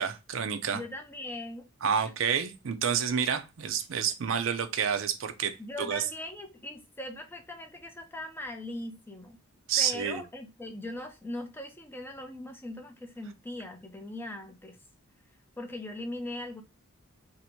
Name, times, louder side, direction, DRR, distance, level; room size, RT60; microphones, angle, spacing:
voice 1, 0.0-0.8 1.8-6.0 9.7-10.2, right 7 dB, 60° right, 0.4 m, -29 dB
voice 2, 0.7-1.6 2.0-2.1 5.6-9.4 9.8-14.8 15.6-16.6, left 1 dB, 10° left, 0.4 m, -40 dB
2.8 x 2.6 x 4.2 m
head